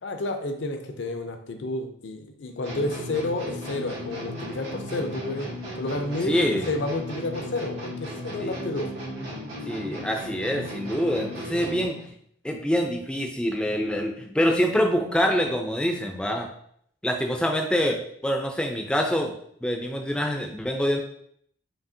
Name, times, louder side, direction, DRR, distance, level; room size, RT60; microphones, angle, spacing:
voice 1, 0.0-5.5 5.7-6.4 6.7-8.9, left 2 dB, 65° left, 6 dB, 0.5 m, -30 dB
sound 1, 2.6-12.1, equal, 90° right, 1.6 m, -36 dB
voice 2, 6.3-6.7 8.4-8.6 9.7-12.0 12.4-16.5 17.0-19.3 19.6-21.0, equal, 5° left, 2 dB, 0.4 m, -25 dB
5.2 x 2.7 x 2.7 m, 0.67 s
head